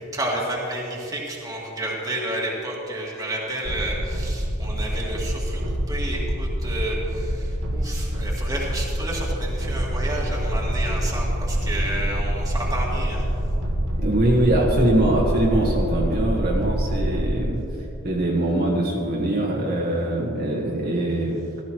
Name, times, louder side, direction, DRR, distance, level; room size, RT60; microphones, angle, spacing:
voice 1, 0.1-5.6 5.9-13.2, right 1 dB, 15° right, -4 dB, 2.0 m, -30 dB
sound 1, 3.6-17.3, right 1 dB, 65° right, 1.3 m, -26 dB
voice 2, 14.0-17.6 18.0-21.5, right 1 dB, 50° right, -4 dB, 1.5 m, -22 dB
15.0 x 14.0 x 3.1 m, 2.9 s
head